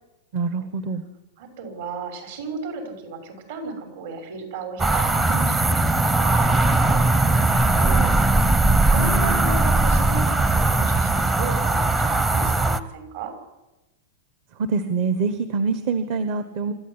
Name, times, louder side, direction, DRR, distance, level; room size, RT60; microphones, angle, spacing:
voice 1, 0.3-1.0 8.9-9.5 14.6-16.7, right 4 dB, 45° right, 10 dB, 1.3 m, -25 dB
voice 2, 1.4-8.0 8.8-13.3, right 4 dB, 60° right, 5 dB, 6.3 m, -35 dB
sound 1, 4.8-12.8, right 2 dB, 10° right, 0.8 m, -19 dB
26.5 x 13.5 x 10.0 m, 1.0 s
supercardioid pair, 170°, 0 cm